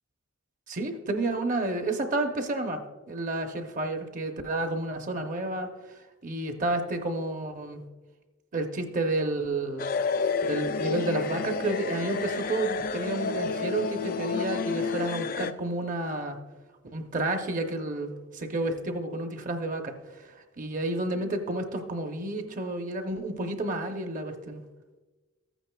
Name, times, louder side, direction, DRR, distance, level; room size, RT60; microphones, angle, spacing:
voice 1, 0.7-2.8 3.1-5.7 6.2-7.8 8.5-9.9 10.4-16.4 16.9-20.3 20.6-24.6, right 2 dB, 40° right, 5 dB, 0.7 m, -30 dB
sound 1, 9.8-15.5, left 5 dB, 40° left, 0.3 m, -30 dB
14.0 x 9.0 x 2.3 m, 1.2 s
head